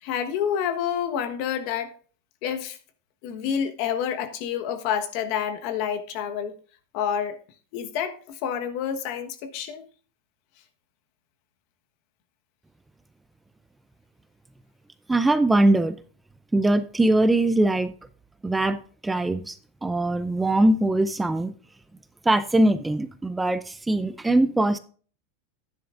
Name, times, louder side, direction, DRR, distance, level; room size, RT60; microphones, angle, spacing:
voice 1, 0.0-1.9 2.4-2.8 3.2-6.6 6.9-7.4 7.7-9.8, left 8 dB, 55° left, 1.3 m, -28 dB
voice 2, 15.1-15.9 16.5-17.9 18.4-19.6 19.8-21.5 22.3-24.8, right 2 dB, 10° right, 0.5 m, -21 dB
11.0 x 10.0 x 2.5 m
supercardioid pair, 135°, 0 cm